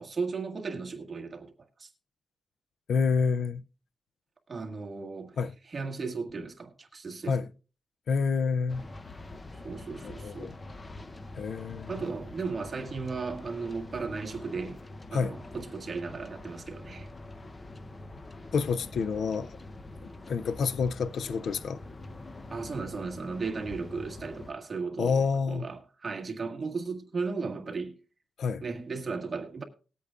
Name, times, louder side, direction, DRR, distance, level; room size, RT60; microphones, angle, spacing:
voice 1, 0.0-1.5 1.8-1.9 4.5-5.4 5.7-7.5 9.6-10.5 11.9-14.8 15.1-17.1 22.5-25.2 25.5-28.0 28.6-29.6, right 4 dB, 40° right, 1.7 m, -35 dB
voice 2, 2.9-3.6 5.4-5.5 7.3-7.5 8.1-8.9 10.0-10.5 11.4-11.9 15.1-15.3 18.5-19.5 20.0-21.8 25.0-25.7 28.4-28.6, left 5 dB, 80° left, 0.4 m, -28 dB
sound 1, 8.7-24.5, left 2 dB, 30° left, 0.8 m, -45 dB
20.0 x 8.2 x 2.4 m
wide cardioid pair, 105°, 0 cm